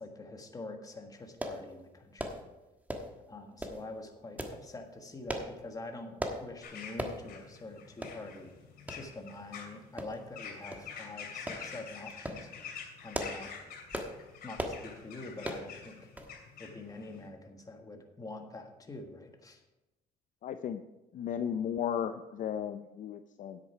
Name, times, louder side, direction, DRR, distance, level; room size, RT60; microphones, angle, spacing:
voice 1, 0.0-2.4 3.3-8.5 8.9-12.7 13.0-13.5 14.4-16.1 16.6-19.6, left 2 dB, 20° left, 4 dB, 1.5 m, -46 dB
sound 1, 1.4-1.6 2.2-2.4 2.9-3.2 3.6-3.8 4.4-4.6 5.3-5.5 6.2-6.4 7.0-7.2 7.6-7.7 8.0-8.2 8.9-9.0 10.0-10.4 10.7-10.9 11.5-11.6 12.1-12.4 12.9-13.4 13.9-14.1 14.6-14.8 15.4-15.7 16.2-16.3 16.6-16.7, right 1 dB, 10° right, 1.3 m, -37 dB
sound 2, 6.6-17.3, left 6 dB, 65° left, 2.8 m, -47 dB
voice 2, 20.4-20.8 21.1-23.6, left 8 dB, 50° left, 9 dB, 0.5 m, -35 dB
10.0 x 8.3 x 4.8 m, 1.0 s
cardioid pair, 110°, 17 cm